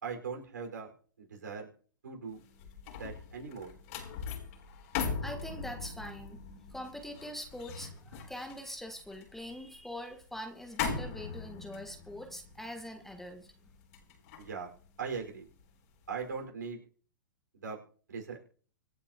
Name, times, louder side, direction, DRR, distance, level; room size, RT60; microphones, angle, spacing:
voice 1, 0.0-0.9 1.2-1.7 2.0-2.4 3.0-3.7 14.4-14.7 15.0-15.5 16.1-16.8 17.5-17.8 18.1-18.4, right 5 dB, 65° right, 2 dB, 4.9 m, -39 dB
sound 1, 2.4-15.7 16.1-16.4, left 6 dB, 45° left, 3.8 m, -41 dB
voice 2, 5.2-6.4 6.7-13.5, left 1 dB, 5° left, 5 dB, 1.4 m, -43 dB
25.5 x 8.8 x 3.0 m, 0.43 s
figure-of-eight pair, 105°, 11 cm